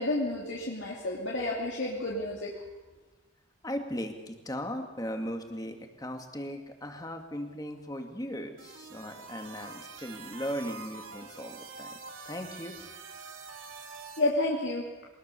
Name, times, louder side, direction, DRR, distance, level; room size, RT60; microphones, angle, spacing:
voice 1, 0.0-2.5 14.2-14.8, left 2 dB, 70° left, -3 dB, 3.0 m, -30 dB
voice 2, 3.6-11.9 12.3-12.9, equal, 20° left, 5 dB, 2.1 m, -38 dB
sound 1, 8.6-14.3, right 4 dB, 85° right, 3.2 m, -45 dB
23.0 x 20.0 x 7.0 m, 1.2 s
head